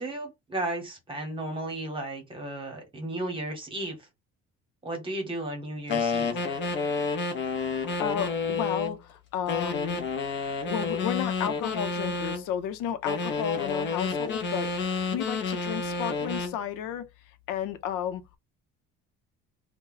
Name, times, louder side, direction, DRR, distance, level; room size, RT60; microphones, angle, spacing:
voice 1, 0.0-4.0 4.8-6.3, right 1 dB, 15° right, 1.1 m, -34 dB
sound 1, 5.9-9.0 9.5-12.4 13.0-16.6, left 4 dB, 40° left, 0.6 m, -30 dB
voice 2, 8.0-10.1 10.7-17.0 17.5-18.4, left 9 dB, 90° left, 0.7 m, -33 dB
2.7 x 2.2 x 3.8 m
cardioid pair, 170°, 30 cm